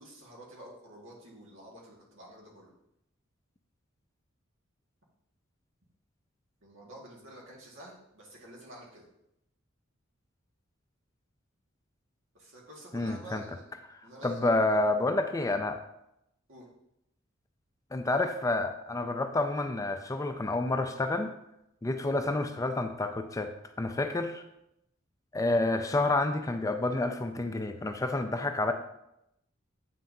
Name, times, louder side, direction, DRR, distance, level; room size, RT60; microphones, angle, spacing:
voice 1, 0.0-2.7 6.6-9.1 12.3-13.7 14.0-14.5 16.5-16.7, right 1 dB, 70° right, -2 dB, 1.8 m, -49 dB
voice 2, 12.9-13.4 14.2-15.8 17.9-21.3 21.8-23.5 23.8-24.4 25.3-28.7, left 2 dB, 15° left, 7 dB, 0.4 m, -29 dB
8.4 x 5.6 x 2.7 m, 0.82 s
head